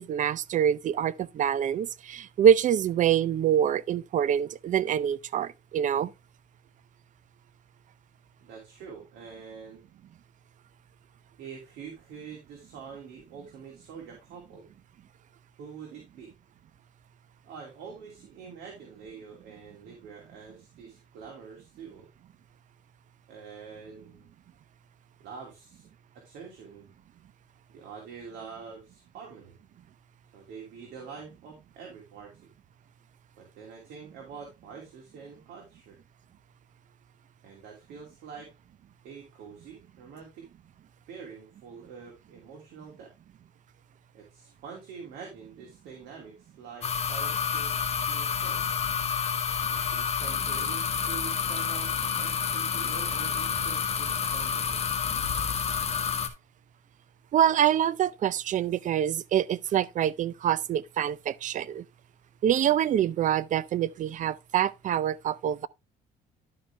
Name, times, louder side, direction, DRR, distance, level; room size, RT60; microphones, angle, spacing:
voice 1, 0.0-6.1 57.3-61.8 62.4-65.7, right 9 dB, 50° right, 0.6 m, -25 dB
voice 2, 8.4-9.8 11.4-14.7 15.6-16.3 17.4-22.1 23.3-24.3 25.2-25.9 26.1-26.9 27.7-29.5 30.3-32.3 33.3-36.0 37.4-38.5 39.0-40.5 41.1-43.1 44.1-48.6 49.7-51.9 52.2-54.8, right 6 dB, 80° right, 2.7 m, -46 dB
sound 1, 46.8-56.3, left 6 dB, 40° left, 1.7 m, -29 dB
11.5 x 5.3 x 3.3 m
cardioid pair, 110°, 17 cm